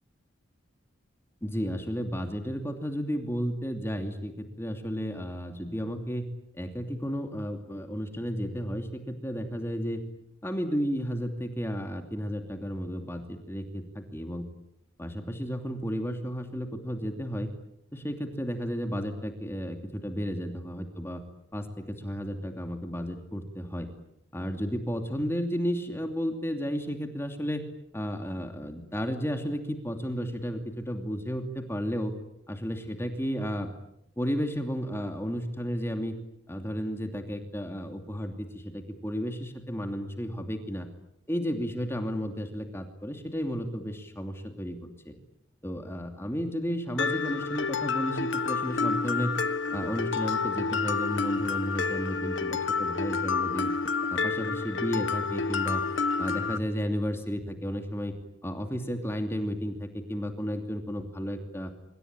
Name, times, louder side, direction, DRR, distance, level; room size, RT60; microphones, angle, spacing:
voice 1, 1.4-6.3 6.5-10.0 10.4-14.5 15.0-17.5 17.9-21.2 21.5-23.9 24.3-27.7 27.9-32.1 32.5-33.7 34.2-36.2 36.5-40.9 41.3-45.1 45.6-49.3 49.7-53.7 54.1-55.8 56.2-58.1 58.4-61.7, equal, 10° left, 5 dB, 2.7 m, -33 dB
Mallet percussion, 47.0-56.6, left 4 dB, 75° left, 1.4 m, -29 dB
26.0 x 25.5 x 9.0 m, 0.76 s
head